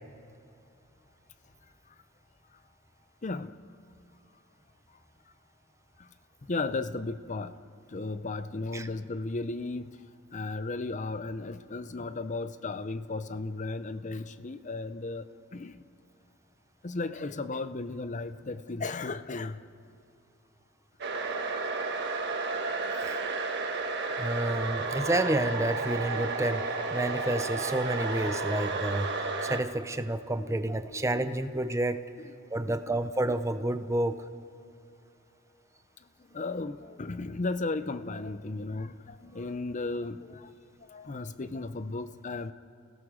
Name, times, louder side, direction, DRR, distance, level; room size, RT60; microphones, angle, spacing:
voice 1, 3.2-3.6 6.0-6.1 6.4-7.6 7.9-10.0 10.3-15.8 16.8-19.7 30.4-31.0 32.2-32.3 32.7-33.0 36.3-40.5 40.8-42.5, left 3 dB, 35° left, 12 dB, 0.6 m, -35 dB
sound 1, 21.0-29.6, right 3 dB, 55° right, 1.5 m, -32 dB
voice 2, 24.2-32.0 32.5-34.2, right 1 dB, 15° right, 10 dB, 0.7 m, -30 dB
29.5 x 17.0 x 6.4 m, 2.6 s
head